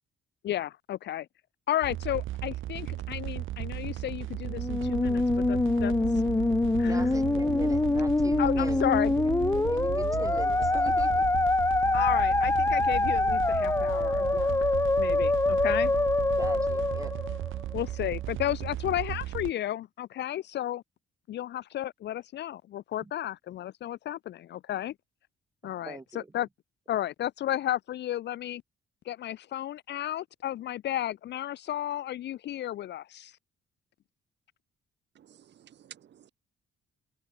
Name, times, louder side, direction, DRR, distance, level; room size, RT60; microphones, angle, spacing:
voice 1, 0.4-1.3 1.7-6.2 6.8-7.0 8.4-9.2 11.9-15.9 17.7-20.8 21.3-24.9 25.6-26.5 26.9-28.6 29.1-33.4, left 12 dB, 60° left, 0.5 m, -33 dB
sound 1, 1.8-19.5, right 14 dB, 80° right, 1.9 m, -35 dB
Musical instrument, 4.5-17.8, left 2 dB, 15° left, 0.7 m, -25 dB
voice 2, 6.9-8.9 9.5-11.2 16.4-17.1 23.0-23.1 25.6-26.3, right 3 dB, 15° right, 1.2 m, -41 dB
voice 3, 35.2-36.3, right 10 dB, 60° right, 1.9 m, -53 dB
cardioid pair, 90°, 20 cm